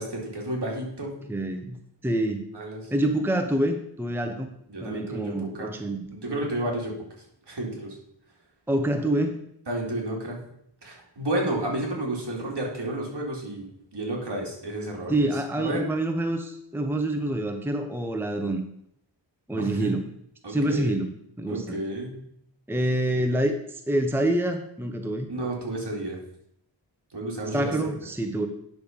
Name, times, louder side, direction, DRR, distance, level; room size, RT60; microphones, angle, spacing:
voice 1, 0.0-1.2 2.5-2.8 4.7-5.7 6.1-6.9 7.5-8.0 9.7-10.4 10.8-15.8 19.6-19.9 20.4-20.9 21.5-22.2 25.3-26.2 27.1-27.8, right 1 dB, 60° right, -1 dB, 2.9 m, -31 dB
voice 2, 1.3-2.4 2.9-4.5 4.8-6.4 8.7-9.4 15.1-18.7 19.5-20.1 20.5-21.8 22.7-25.3 27.5-28.5, right 1 dB, 5° right, 6 dB, 0.9 m, -27 dB
9.3 x 6.5 x 5.4 m, 0.72 s
wide cardioid pair, 85°, 46 cm